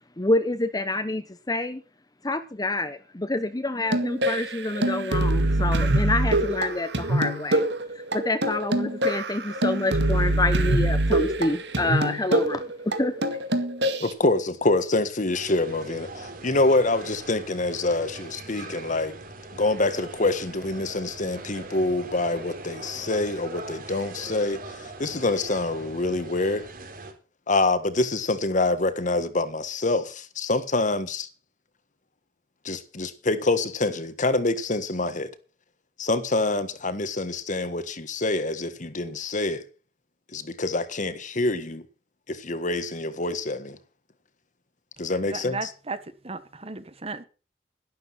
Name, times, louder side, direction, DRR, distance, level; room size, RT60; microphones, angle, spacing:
voice 1, 0.2-1.8 2.2-7.7 8.1-13.1, left 2 dB, 20° left, 0.9 m, -27 dB
sound 1, 3.8-14.1, right 1 dB, 80° right, 2.2 m, -24 dB
voice 2, 14.0-19.1 19.5-24.6 25.0-26.7 27.5-31.3 32.6-35.3 36.0-39.6 40.3-41.8 42.3-43.8 45.0-45.6, left 2 dB, 45° left, 1.5 m, -26 dB
sound 2, 15.3-27.1, right 2 dB, 55° right, 3.8 m, -41 dB
voice 3, 45.2-47.2, right 3 dB, 35° right, 1.4 m, -35 dB
12.0 x 12.0 x 5.9 m
head